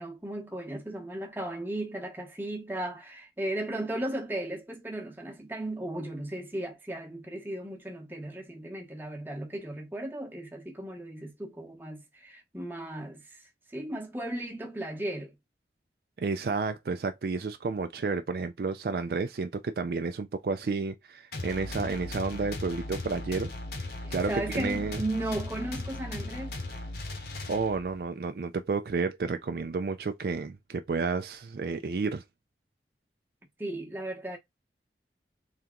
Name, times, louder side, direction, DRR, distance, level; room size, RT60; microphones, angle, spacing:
voice 1, 0.0-13.4 13.7-15.3 24.0-26.6 33.6-34.4, right 1 dB, 10° right, 0.9 m, -36 dB
voice 2, 16.2-23.5 24.1-25.0 27.5-32.2, right 4 dB, 55° right, 0.4 m, -31 dB
sound 1, 21.3-28.0, left 2 dB, 65° left, 1.0 m, -37 dB
3.4 x 2.9 x 3.6 m
head